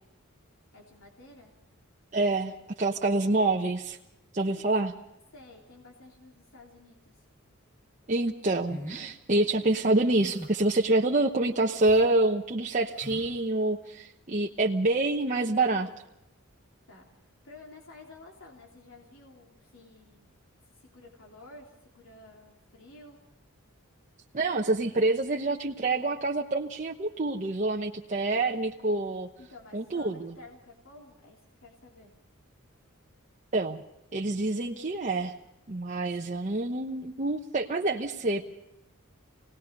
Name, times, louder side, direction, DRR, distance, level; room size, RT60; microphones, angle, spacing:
voice 1, 0.7-1.5 4.3-4.5 5.3-7.3 16.9-17.1 17.4-20.3 20.7-23.2 29.4-32.1, left 2 dB, 70° left, -1 dB, 3.3 m, -52 dB
voice 2, 2.1-4.0 4.3-4.9 8.1-15.9 24.3-29.3 29.7-30.3 33.5-33.8 34.1-35.3 35.7-38.5, right 2 dB, 35° right, -1 dB, 1.1 m, -27 dB
sound 1, 8.7-9.1 10.1-10.7 11.6-12.0 12.9-13.3, equal, 15° left, 7.7 m, -42 dB
27.0 x 19.0 x 5.3 m, 0.90 s
head